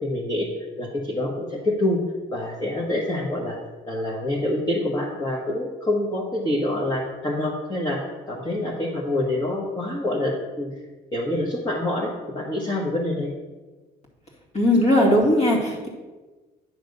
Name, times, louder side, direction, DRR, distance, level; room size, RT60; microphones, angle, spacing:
voice 1, 0.0-0.5 0.8-2.0 2.3-3.6 3.9-8.0 8.3-10.7 11.1-13.3, left 1 dB, 25° left, -3 dB, 1.3 m, -26 dB
voice 2, 14.5-15.9, left 1 dB, 40° left, -1 dB, 2.1 m, -18 dB
9.4 x 3.4 x 6.6 m, 1.2 s
cardioid pair, 110°, 17 cm